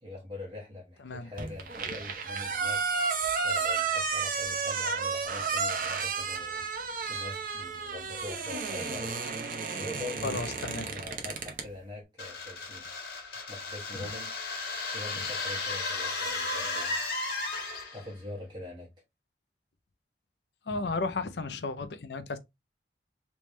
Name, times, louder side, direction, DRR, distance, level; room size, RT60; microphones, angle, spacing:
voice 1, 0.0-2.8 3.1-6.7 7.1-9.1 9.7-12.9 13.5-14.3 14.9-17.0 17.9-18.9, left 2 dB, 25° right, 1.3 m, -43 dB
sound 1, 1.4-11.7, right 5 dB, 50° right, 0.7 m, -32 dB
voice 2, 10.2-10.9 13.9-14.0 20.7-22.4, left 3 dB, 75° left, 0.6 m, -33 dB
sound 2, 12.2-18.1, left 3 dB, 60° left, 1.6 m, -34 dB
3.5 x 3.0 x 3.1 m
head